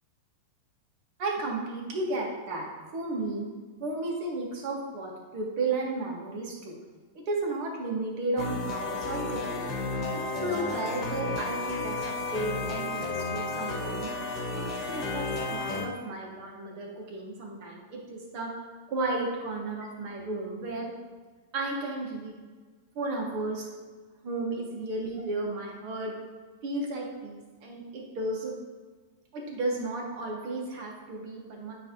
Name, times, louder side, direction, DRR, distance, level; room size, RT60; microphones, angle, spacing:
voice 1, 1.2-2.7 2.9-3.5 3.8-6.8 7.3-9.7 10.1-14.1 14.5-18.5 18.9-20.9 21.5-22.3 22.9-23.7 24.2-26.1 26.6-28.5 29.3-31.7, right 2 dB, 50° right, -1 dB, 1.8 m, -33 dB
sound 1, 8.4-15.9, left 3 dB, 35° left, 1.3 m, -32 dB
9.1 x 3.3 x 3.1 m, 1.4 s
hypercardioid pair, 100°, 0 cm